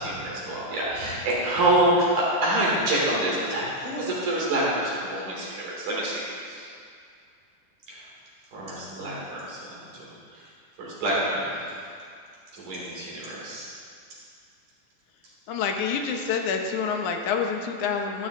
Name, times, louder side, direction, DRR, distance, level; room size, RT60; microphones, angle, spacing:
voice 1, 0.0-6.7 7.9-8.0 8.5-10.0 10.3-10.4 10.8-11.6 12.5-13.7, right 1 dB, 85° right, -6 dB, 4.7 m, -26 dB
voice 2, 15.5-18.3, left 6 dB, 75° left, 3 dB, 2.3 m, -27 dB
13.0 x 12.0 x 3.7 m, 2.3 s
omnidirectional pair, 3.5 m